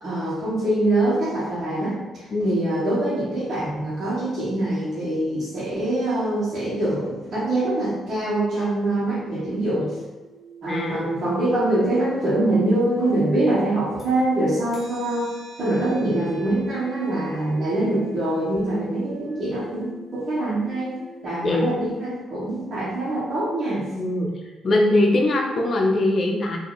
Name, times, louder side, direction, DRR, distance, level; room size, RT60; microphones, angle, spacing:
voice 1, 0.0-10.0 10.6-15.3 15.6-23.8, right 1 dB, 50° right, -10 dB, 1.5 m, -24 dB
voice 2, 2.3-2.6 10.7-11.2 21.4-21.9 23.9-24.3 24.6-26.6, left 1 dB, 45° left, 1 dB, 0.7 m, -21 dB
sound 1, 10.2-14.2 14.6-21.3, right 2 dB, 5° right, 1.4 m, -47 dB
2.9 x 2.8 x 4.0 m, 1.2 s
cardioid pair, 90°, 0 cm